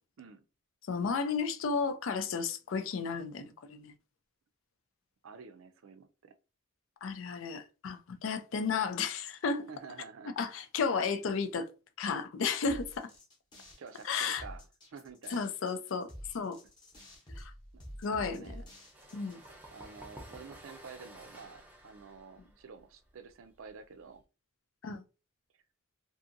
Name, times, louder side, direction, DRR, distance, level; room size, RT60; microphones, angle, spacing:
voice 1, 0.9-3.9 7.0-9.7 10.4-11.7 12.0-13.1 14.0-14.4 15.3-16.1 16.3-16.6 17.4-17.5 18.0-18.5 19.1-19.4 24.8-25.0, left 5 dB, 75° left, 0.4 m, -33 dB
voice 2, 5.2-6.3 9.7-10.3 13.8-14.7 14.9-15.6 17.7-17.8 18.1-18.6 19.7-24.2, right 5 dB, 75° right, 0.4 m, -49 dB
sound 1, 12.7-19.5, equal, 20° left, 0.8 m, -49 dB
sound 2, 18.7-24.2, right 1 dB, 10° right, 0.4 m, -53 dB
2.7 x 2.6 x 2.5 m
head